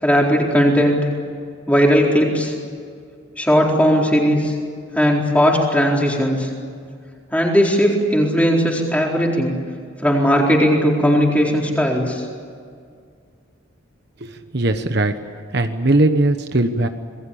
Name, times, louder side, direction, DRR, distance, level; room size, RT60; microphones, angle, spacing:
voice 1, 0.0-1.0 1.7-2.5 3.4-4.5 4.9-6.5 7.3-9.5 10.0-12.3, equal, 5° left, -1 dB, 4.3 m, -17 dB
voice 2, 14.2-15.1 15.5-16.9, right 2 dB, 55° right, 8 dB, 1.2 m, -19 dB
27.0 x 21.0 x 8.7 m, 2.2 s
head